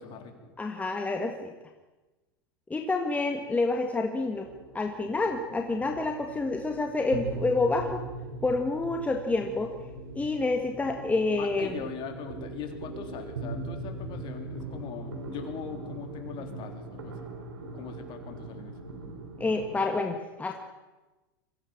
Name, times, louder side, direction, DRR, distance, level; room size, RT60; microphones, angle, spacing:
voice 1, 0.0-0.5 11.0-11.1 11.4-17.3 17.7-18.8, left 7 dB, 40° left, 5 dB, 3.9 m, -41 dB
voice 2, 0.6-1.5 2.7-4.5 4.7-8.0 8.4-9.7 10.2-11.8 19.4-20.5, left 3 dB, 10° left, 3 dB, 1.7 m, -28 dB
sound 1, 3.0-19.8, right 3 dB, 90° right, 4.4 m, -41 dB
23.5 x 15.5 x 7.3 m, 1.1 s
hypercardioid pair, 115°, 12 cm